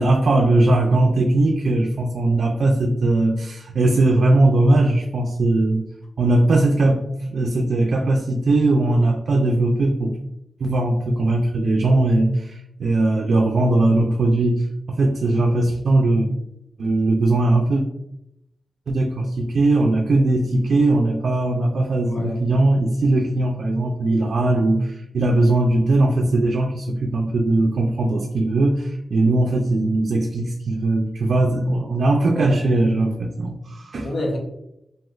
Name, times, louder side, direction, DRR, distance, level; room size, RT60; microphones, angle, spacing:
voice 1, 0.0-5.8 6.2-10.2 10.6-16.3 16.8-17.8 18.9-34.1, right 2 dB, 75° right, 1 dB, 0.3 m, -19 dB
voice 2, 22.0-22.4 32.3-32.6 32.9-33.1 34.0-34.4, left 1 dB, 70° left, 1 dB, 0.7 m, -28 dB
3.0 x 2.7 x 2.3 m, 0.83 s
cardioid pair, 70°, 0 cm